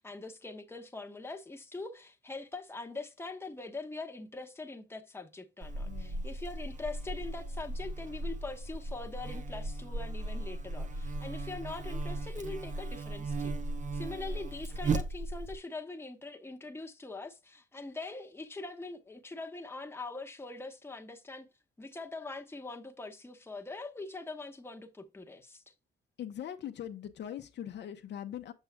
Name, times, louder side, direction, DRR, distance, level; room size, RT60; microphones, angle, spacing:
voice 1, 0.0-13.6 13.9-21.5 21.8-25.7, left 3 dB, 10° left, 1.0 m, -43 dB
Buzz, 5.6-15.6, right 2 dB, 40° right, 0.8 m, -37 dB
voice 2, 5.8-6.3 26.2-28.5, left 10 dB, 60° left, 0.7 m, -41 dB
7.2 x 6.2 x 2.2 m
cardioid pair, 90°, 20 cm